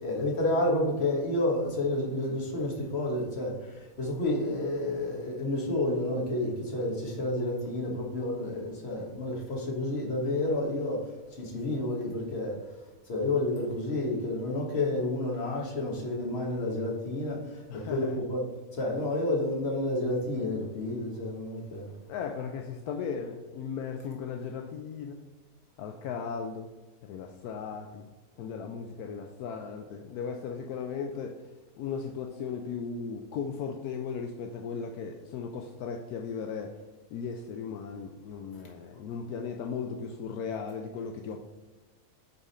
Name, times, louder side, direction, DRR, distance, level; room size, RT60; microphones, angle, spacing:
voice 1, 0.0-12.6 13.1-18.4 18.7-21.9, left 1 dB, 40° left, -1 dB, 1.7 m, -30 dB
voice 2, 17.7-18.2 22.1-25.3 25.8-26.7 27.0-28.1 28.4-31.5 31.8-36.8 37.1-41.4, left 6 dB, 80° left, 4 dB, 1.1 m, -37 dB
9.2 x 3.7 x 4.2 m, 1.2 s
omnidirectional pair, 1.7 m